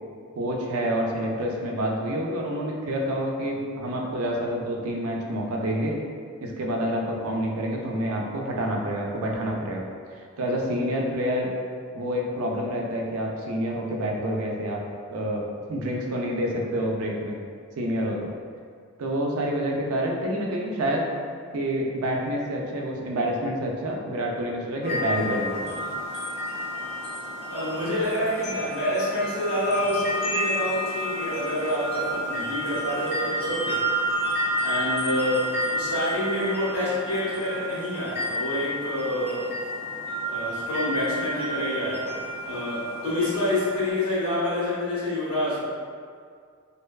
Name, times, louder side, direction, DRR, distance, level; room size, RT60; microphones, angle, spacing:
voice 1, 0.4-6.0 6.4-9.9 10.4-11.5 11.9-14.8 15.1-15.4 15.7-17.4 17.8-18.3 19.0-21.0 21.5-25.8, equal, 85° right, -1 dB, 0.4 m, -28 dB
sound 1, 24.8-43.9, equal, 30° left, 0.5 m, -30 dB
voice 2, 27.5-33.8 34.6-39.5 40.2-42.2 42.4-45.6, left 1 dB, 85° left, -11 dB, 1.2 m, -27 dB
2.6 x 2.2 x 2.3 m, 2.1 s
head